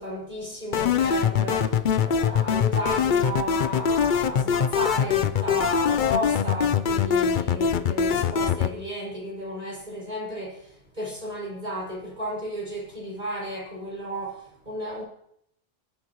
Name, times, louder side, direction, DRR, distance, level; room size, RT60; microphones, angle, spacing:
voice 1, 0.0-15.0, equal, 50° right, -5 dB, 6.8 m, -33 dB
sound 1, 0.7-8.7, left 7 dB, 55° left, 0.7 m, -23 dB
20.0 x 10.5 x 3.1 m, 0.71 s
omnidirectional pair, 1.1 m